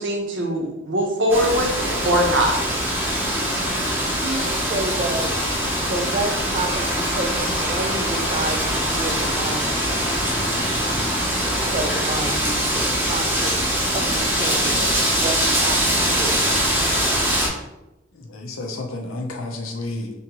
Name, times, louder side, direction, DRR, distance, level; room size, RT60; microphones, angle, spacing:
voice 1, 0.0-2.6, equal, 60° right, 1 dB, 0.7 m, -21 dB
Wind, 1.3-17.5, equal, 10° right, 0.7 m, -22 dB
voice 2, 4.2-5.3 5.8-10.1 11.7-13.5 13.9-14.9 15.1-16.4, right 2 dB, 30° right, 6 dB, 0.3 m, -30 dB
voice 3, 18.3-20.1, left 2 dB, 80° left, 2 dB, 0.6 m, -30 dB
3.5 x 2.8 x 2.9 m, 0.95 s
head